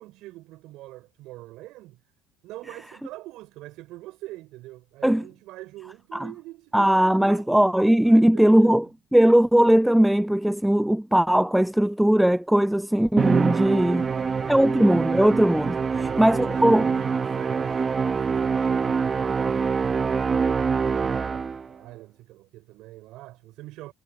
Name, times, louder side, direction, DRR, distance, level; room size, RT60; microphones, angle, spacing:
voice 1, 0.0-2.0 2.4-7.5 8.0-8.8 13.9-15.0 15.9-19.6 20.1-23.9, right 17 dB, 65° right, 6.0 m, -44 dB
voice 2, 6.7-8.9 9.1-14.1 14.5-15.8 16.2-16.9, right 1 dB, 5° right, 0.4 m, -19 dB
Musical instrument, 13.2-21.7, right 5 dB, 30° right, 1.8 m, -25 dB
hypercardioid pair, 75°, 0 cm